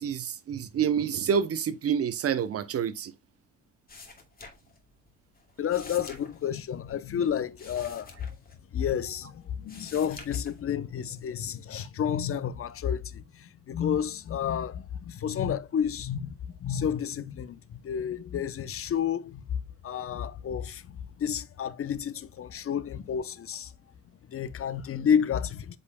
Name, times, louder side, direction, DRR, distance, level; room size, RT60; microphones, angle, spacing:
voice 1, 0.0-3.1, right 7 dB, 50° right, 0.8 m, -28 dB
sound 1, 3.9-5.1 5.3-9.1 9.5-10.9 11.4-12.0, left 3 dB, 30° left, 2.3 m, -48 dB
voice 2, 5.6-8.1 8.7-23.7 24.3-25.8, left 8 dB, 50° left, 0.7 m, -31 dB
8.4 x 5.3 x 2.2 m
cardioid pair, 90°, 30 cm